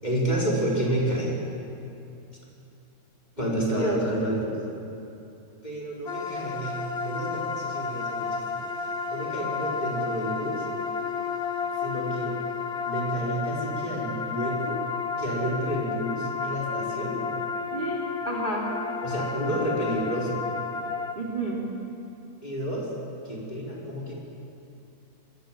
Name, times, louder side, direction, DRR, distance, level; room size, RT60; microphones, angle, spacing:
voice 1, 0.0-1.3 3.4-4.5 5.6-8.6 9.1-10.7 11.8-12.4 12.8-14.8 15.2-17.2 19.0-20.4 22.4-22.9 23.2-24.1, right 1 dB, 25° left, -4 dB, 4.9 m, -30 dB
voice 2, 3.4-4.0 17.7-18.7 21.1-21.6, right 1 dB, 30° right, -2 dB, 3.2 m, -30 dB
sound 1, 6.1-21.1, left 5 dB, 45° left, 1.9 m, -32 dB
25.5 x 21.5 x 7.6 m, 2.7 s
omnidirectional pair, 1.6 m